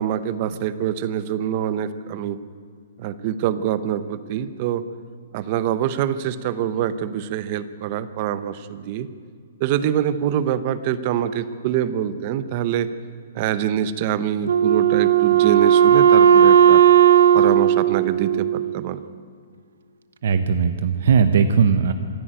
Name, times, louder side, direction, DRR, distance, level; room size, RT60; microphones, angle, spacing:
voice 1, 0.0-2.4 3.0-4.8 5.3-9.1 9.6-12.9 13.3-16.8 17.3-19.0, right 10 dB, 30° right, 14 dB, 0.8 m, -25 dB
Wind instrument woodwind instrument, 14.5-19.0, right 9 dB, 80° right, 0.9 m, -15 dB
voice 2, 20.2-21.9, right 6 dB, 55° right, 10 dB, 1.0 m, -18 dB
26.0 x 11.0 x 9.0 m, 2.1 s
hypercardioid pair, 175°, 0 cm